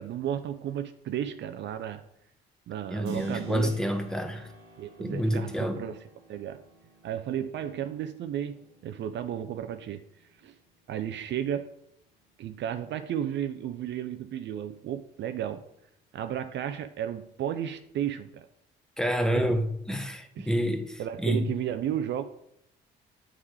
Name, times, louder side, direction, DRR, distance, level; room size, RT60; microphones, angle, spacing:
voice 1, 0.0-2.0 2.7-3.7 4.8-6.0 6.3-6.6 7.0-10.0 10.4-10.5 10.9-11.7 12.4-15.6 16.1-18.5 19.4-19.5 20.4-20.5 21.0-22.2, right 10 dB, 60° right, 0.5 m, -33 dB
voice 2, 2.9-4.5 5.0-5.8 19.0-21.5, equal, 5° left, 0.9 m, -28 dB
Keyboard (musical), 3.0-11.6, right 1 dB, 85° right, 1.2 m, -51 dB
8.4 x 3.6 x 3.3 m
supercardioid pair, 55°, 21 cm